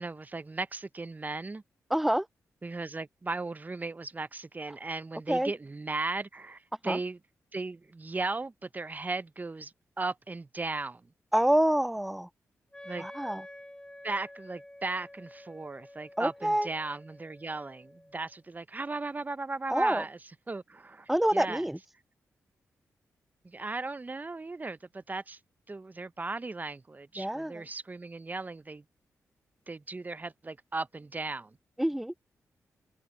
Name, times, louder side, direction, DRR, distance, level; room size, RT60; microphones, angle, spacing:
voice 1, 0.0-1.6 2.6-7.2 7.5-9.7 10.0-11.0 12.8-13.1 14.0-20.2 20.5-21.6 23.4-25.4 25.7-28.8 29.7-31.6, right 3 dB, 30° right, 0.8 m, -36 dB
voice 2, 1.9-2.3 5.3-5.5 6.8-7.0 11.3-12.3 13.0-13.4 16.2-16.7 19.7-20.0 21.1-21.8 27.2-27.6 31.8-32.1, right 1 dB, 5° right, 0.4 m, -27 dB
Wind instrument woodwind instrument, 12.7-18.4, left 1 dB, 15° left, 2.7 m, -50 dB
cardioid pair, 60°, 6 cm